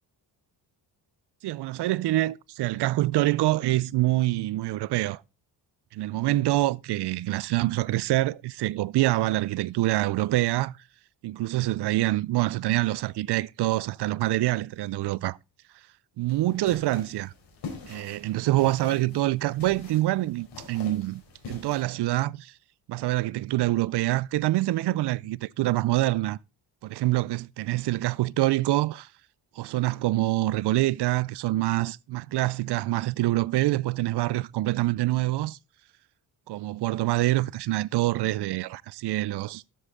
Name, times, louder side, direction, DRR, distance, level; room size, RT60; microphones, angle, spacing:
voice 1, 1.4-5.2 5.9-10.7 11.2-15.4 16.2-17.3 17.9-21.2 21.5-22.5 22.9-26.4 26.8-29.1 29.6-35.6 36.5-39.6, right 17 dB, 70° right, 0.5 m, -26 dB
sound 1, 16.3-21.8, left 4 dB, 70° left, 4.3 m, -44 dB
12.5 x 7.8 x 3.6 m
cardioid pair, 125°, 42 cm